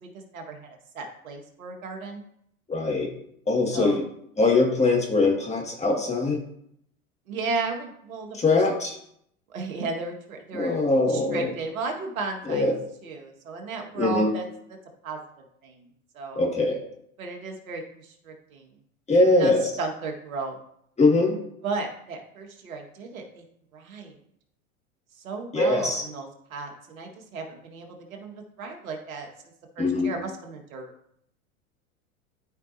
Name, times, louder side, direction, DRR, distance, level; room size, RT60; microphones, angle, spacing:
voice 1, 0.0-2.2 3.7-4.0 7.3-8.6 9.5-12.7 13.0-14.5 15.0-15.2 15.6-16.5 17.2-18.7 19.4-20.6 21.6-23.4 23.7-24.2 25.2-29.3 29.8-30.9, right 3 dB, 75° right, 3 dB, 1.8 m, -34 dB
voice 2, 2.7-3.1 3.5-4.0 4.4-6.4 8.3-8.9 10.5-11.5 12.5-12.7 14.0-14.3 16.4-16.8 19.1-19.6 21.0-21.4 25.5-26.0 29.8-30.1, left 2 dB, 15° left, 0 dB, 2.0 m, -22 dB
12.5 x 5.1 x 2.7 m, 0.71 s
hypercardioid pair, 95°, 42 cm